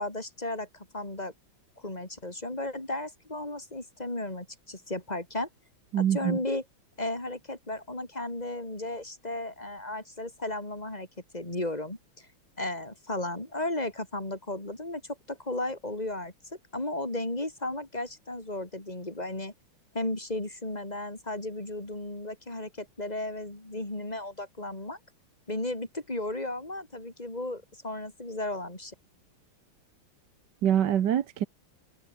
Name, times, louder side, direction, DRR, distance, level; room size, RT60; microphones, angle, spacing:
voice 1, 0.0-1.3 1.8-5.5 5.9-6.6 7.0-11.1 11.3-12.3 12.6-16.3 16.7-19.5 19.9-25.0 25.5-28.9, left 2 dB, 20° left, 4.5 m, -34 dB
voice 2, 5.9-6.4 30.6-31.4, right 10 dB, 60° right, 1.6 m, -25 dB
omnidirectional pair, 2.3 m